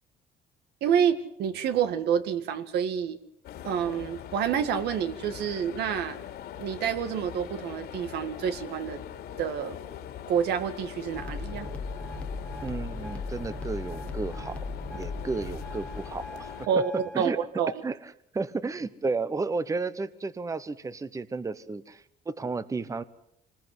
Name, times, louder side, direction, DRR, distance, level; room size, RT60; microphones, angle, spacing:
voice 1, 0.8-3.2 3.6-6.2 6.6-9.0 9.4-9.8 10.3-11.7 16.7-17.7, right 8 dB, 75° right, 9 dB, 2.0 m, -28 dB
sound 1, 3.4-16.7, left 10 dB, 70° left, 3.1 m, -42 dB
sound 2, 11.1-17.3, left 3 dB, 5° left, 1.4 m, -38 dB
voice 2, 12.6-14.7 14.9-16.5 16.9-17.4 17.8-23.0, right 3 dB, 20° right, 14 dB, 1.0 m, -33 dB
25.5 x 20.5 x 8.0 m, 0.75 s
cardioid pair, 110°, 17 cm